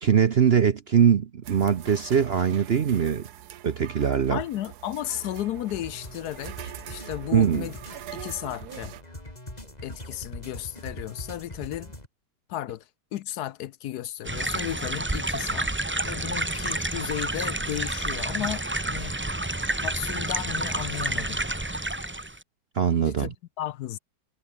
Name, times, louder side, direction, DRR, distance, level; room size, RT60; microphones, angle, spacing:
voice 1, 0.0-3.3 3.6-4.4 7.3-7.7 22.7-23.3, right 7 dB, 50° right, 0.8 m, -22 dB
sound 1, 1.4-9.0, right 12 dB, 70° right, 1.3 m, -43 dB
voice 2, 4.3-7.8 8.1-9.0 9.8-11.9 12.5-15.7 16.0-19.2 19.8-21.4 23.0-24.0, left 13 dB, 70° left, 1.1 m, -34 dB
sound 2, 5.7-12.1, left 1 dB, 20° left, 5.9 m, -42 dB
sound 3, 14.2-22.4, right 2 dB, 10° right, 0.5 m, -29 dB
omnidirectional pair, 1.9 m